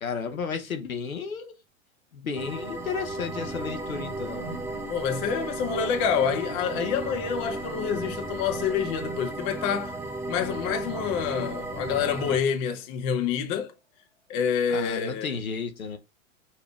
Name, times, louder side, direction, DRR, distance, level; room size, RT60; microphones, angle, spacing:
voice 1, 0.0-1.5 2.1-4.6 14.7-16.0, left 5 dB, 90° left, 0.8 m, -33 dB
sound 1, 2.4-12.4, right 2 dB, 5° right, 0.4 m, -35 dB
sound 2, 3.2-13.1 13.4-13.6 13.9-14.0 14.4-14.5, left 1 dB, 10° left, 1.0 m, -48 dB
voice 2, 4.9-9.9 10.3-13.7 14.3-15.3, left 7 dB, 40° left, 0.9 m, -27 dB
5.0 x 2.8 x 3.4 m
hypercardioid pair, 100°, 40 cm